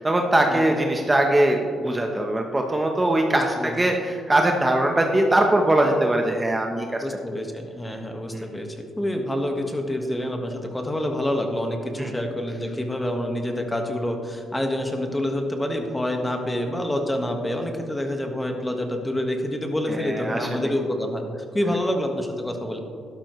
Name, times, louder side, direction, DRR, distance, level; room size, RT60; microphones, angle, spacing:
voice 1, 0.0-7.0 8.3-8.4 12.0-12.1 19.9-20.7, right 1 dB, 15° right, 2 dB, 1.0 m, -21 dB
voice 2, 3.3-3.7 7.0-22.8, left 1 dB, 10° left, 3 dB, 1.5 m, -27 dB
12.5 x 11.5 x 3.2 m, 2.3 s
cardioid pair, 90°, 0 cm